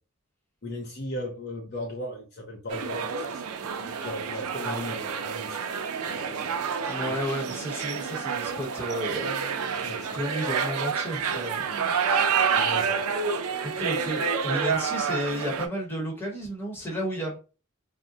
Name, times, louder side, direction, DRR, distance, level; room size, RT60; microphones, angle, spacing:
voice 1, 0.6-3.5 3.8-5.8 6.0-6.7 7.1-7.3 9.7-10.2 12.1-13.0 13.7-14.0, left 1 dB, 45° left, 0.6 m, -38 dB
sound 1, 2.7-15.7, right 6 dB, 80° right, 0.5 m, -28 dB
voice 2, 6.9-11.9 13.6-17.4, equal, 10° left, 0.9 m, -33 dB
3.7 x 2.1 x 2.7 m
head